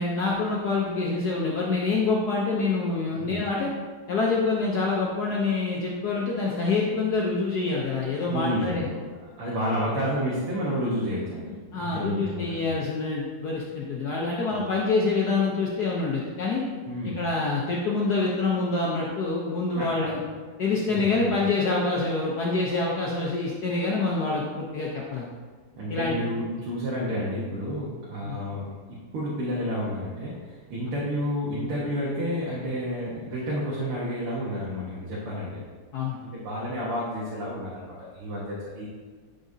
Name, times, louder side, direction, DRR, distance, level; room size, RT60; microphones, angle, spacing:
voice 1, 0.0-3.7 4.1-8.8 11.5-16.6 17.2-20.2 20.6-25.3 25.9-26.1 28.2-28.4 35.9-36.2, left 3 dB, 60° left, -3 dB, 1.2 m, -26 dB
voice 2, 8.3-9.0 9.4-11.5 11.8-12.7 14.5-14.6 16.9-17.2 19.7-19.9 20.9-21.3 25.8-35.6 36.2-38.9, equal, 80° right, -7 dB, 2.2 m, -30 dB
11.5 x 5.0 x 2.7 m, 1.5 s
omnidirectional pair, 2.4 m